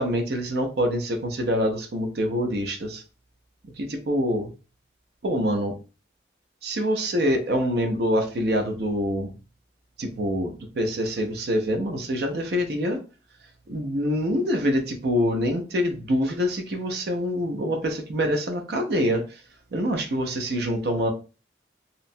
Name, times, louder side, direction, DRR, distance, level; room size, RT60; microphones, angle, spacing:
voice 1, 0.0-3.0 3.8-4.5 5.2-5.7 6.6-9.3 10.0-13.0 13.7-19.4 19.7-21.1, equal, 60° right, 4 dB, 0.5 m, -25 dB
2.8 x 2.1 x 2.6 m, 0.33 s
head